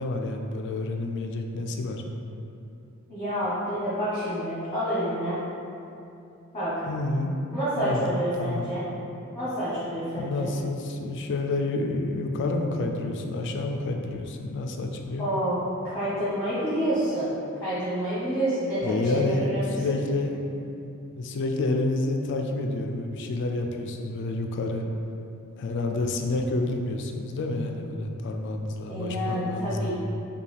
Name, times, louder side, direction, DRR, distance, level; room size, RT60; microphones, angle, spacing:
voice 1, 0.0-2.0 6.9-7.3 7.7-8.8 10.2-15.3 18.8-20.5 21.2-24.9 25.6-29.9, left 2 dB, 55° left, 3 dB, 0.4 m, -29 dB
voice 2, 3.1-5.4 6.5-6.8 7.5-8.8 9.3-10.5 15.2-17.3 17.6-19.8 28.9-30.0, right 1 dB, 20° left, -10 dB, 0.9 m, -28 dB
5.3 x 2.3 x 3.3 m, 2.7 s
head